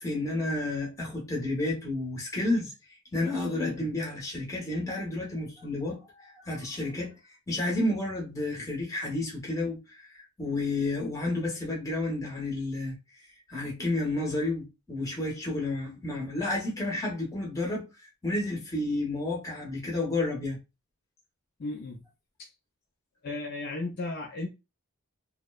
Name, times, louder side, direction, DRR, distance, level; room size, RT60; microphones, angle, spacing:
voice 1, 0.0-2.7 3.1-7.1 7.5-10.1 10.4-13.0 13.5-17.8 18.2-20.6, left 2 dB, 15° left, 0.8 m, -31 dB
voice 2, 21.6-22.0 23.2-24.5, left 2 dB, 45° left, 0.4 m, -35 dB
2.8 x 2.0 x 2.2 m
head